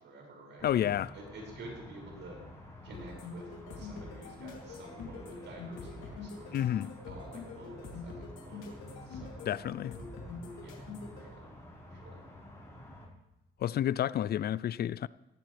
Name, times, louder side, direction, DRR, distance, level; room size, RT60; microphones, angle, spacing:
voice 1, 0.0-2.4 2.8-9.4 10.6-11.5 11.8-12.2, right 2 dB, 65° right, 6.0 m, -50 dB
voice 2, 0.6-1.1 6.5-6.9 9.5-10.0 13.6-15.1, left 11 dB, 55° left, 0.4 m, -30 dB
sound 1, 0.6-13.1, left 1 dB, 15° left, 5.1 m, -50 dB
sound 2, 2.9-11.2, left 4 dB, 90° left, 2.9 m, -45 dB
16.5 x 16.5 x 3.4 m
cardioid pair, 90°, 20 cm